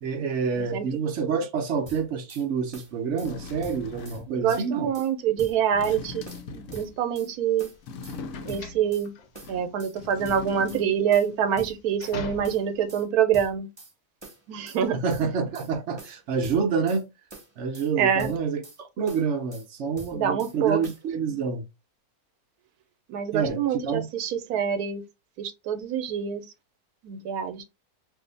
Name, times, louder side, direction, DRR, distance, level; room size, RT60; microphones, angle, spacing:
voice 1, 0.0-4.9 14.9-17.1 17.6-18.6 19.0-21.6 23.3-24.1, right 5 dB, 60° right, 0.8 m, -28 dB
sound 1, 1.9-2.4 2.7-3.3 3.6-4.2 4.5-5.1 5.4-6.0 6.3-7.3 7.6-8.2 8.5-9.1 9.3-10.0 10.2-10.8 11.1-12.2 12.4-13.0 13.3-13.9 14.2-14.8 15.1-15.7 16.0-17.0 17.3-17.9 18.2-18.8 19.1-19.7 20.0-20.6 20.8-21.0, right 1 dB, 20° right, 0.8 m, -45 dB
sound 2, 2.7-2.8 3.2-4.3 5.6-7.0 7.8-8.9 9.3-11.0 11.3-11.4, left 4 dB, 70° left, 1.0 m, -40 dB
voice 2, 4.3-7.7 8.5-9.1 9.5-13.7 14.5-15.0 18.0-18.3 20.1-20.8 23.1-25.0 25.4-26.4 27.0-27.6, right 8 dB, 85° right, 1.1 m, -26 dB
sound 3, 6.9-12.9, left 1 dB, 90° left, 1.3 m, -42 dB
2.7 x 2.6 x 3.8 m
omnidirectional pair, 1.6 m